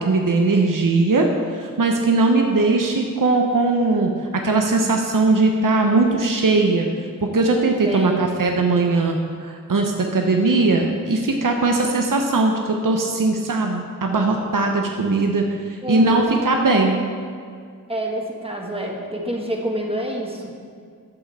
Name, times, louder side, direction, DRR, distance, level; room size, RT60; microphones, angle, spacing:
voice 1, 0.0-6.9 7.2-15.4 15.7-17.0, right 3 dB, 75° right, 2 dB, 0.8 m, -19 dB
voice 2, 7.8-8.2 15.8-16.3 17.9-20.7, right 1 dB, 15° right, 0 dB, 1.4 m, -27 dB
11.0 x 7.4 x 4.1 m, 2.2 s
wide cardioid pair, 55°, 33 cm